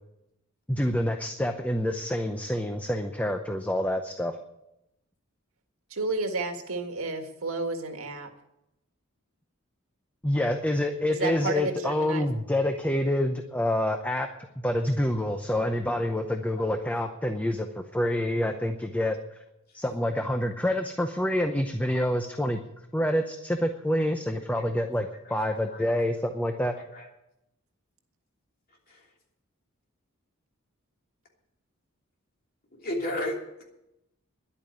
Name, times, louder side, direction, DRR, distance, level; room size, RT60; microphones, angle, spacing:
voice 1, 0.7-4.4 10.2-14.3 14.6-17.7 17.9-19.2 19.7-22.6 22.9-26.7, left 1 dB, 5° left, 6 dB, 0.7 m, -27 dB
voice 2, 5.9-8.3 11.1-12.3, right 2 dB, 90° right, 6 dB, 1.8 m, -31 dB
voice 3, 26.7-27.1 28.9-29.0 32.7-33.6, left 1 dB, 45° left, 0 dB, 3.1 m, -34 dB
11.0 x 8.8 x 9.6 m, 0.87 s
head